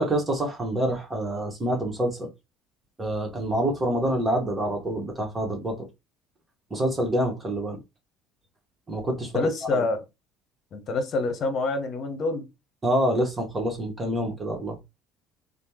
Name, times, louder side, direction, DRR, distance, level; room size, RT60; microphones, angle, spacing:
voice 1, 0.0-2.3 3.0-5.9 6.7-7.8 8.9-9.3 9.7-9.8 12.8-14.8, right 1 dB, 25° right, 1.3 m, -26 dB
voice 2, 9.2-10.0 10.7-12.4, left 3 dB, 45° left, 1.0 m, -26 dB
3.3 x 2.2 x 2.9 m
hypercardioid pair, 60°, 0 cm